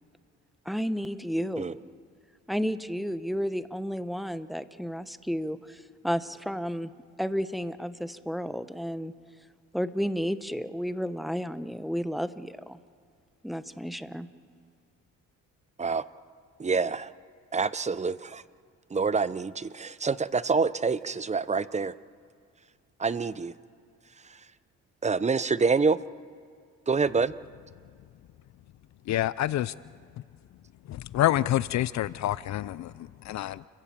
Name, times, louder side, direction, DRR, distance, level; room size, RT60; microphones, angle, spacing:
voice 1, 0.6-1.7 2.5-6.9 7.2-9.1 9.7-12.8 13.4-14.3, equal, ahead, 12 dB, 0.9 m, -32 dB
voice 2, 16.6-17.1 17.5-18.4 18.9-21.9 23.0-23.5 25.0-26.0 26.9-27.3, right 4 dB, 25° right, 16 dB, 0.6 m, -26 dB
voice 3, 29.1-29.7 30.8-33.7, left 13 dB, 65° left, 19 dB, 0.5 m, -27 dB
29.5 x 16.0 x 7.5 m, 2.2 s
cardioid pair, 90°, 30 cm